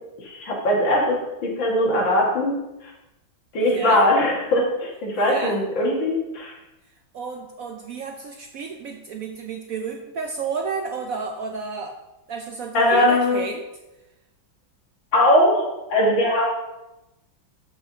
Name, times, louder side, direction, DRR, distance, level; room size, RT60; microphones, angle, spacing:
voice 1, 0.2-2.6 3.5-6.5 12.7-13.5 15.1-16.4, left 1 dB, 70° left, -2 dB, 2.4 m, -20 dB
voice 2, 3.7-4.1 5.2-5.6 7.1-11.9 12.3-13.7, right 5 dB, 80° right, 3 dB, 0.7 m, -31 dB
12.5 x 6.2 x 2.7 m, 0.95 s
omnidirectional pair, 2.2 m